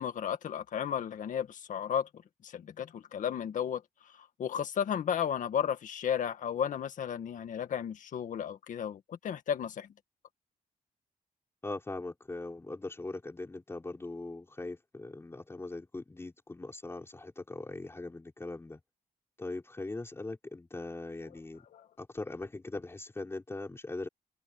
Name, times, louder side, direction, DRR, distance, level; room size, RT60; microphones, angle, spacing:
voice 1, 0.0-2.1 2.4-3.8 4.2-9.9 21.7-21.9, left 8 dB, 75° left, 2.0 m, -33 dB
voice 2, 11.6-18.8 19.4-21.6 22.0-24.1, left 2 dB, 20° left, 5.5 m, -40 dB
wide cardioid pair, 125°, 13 cm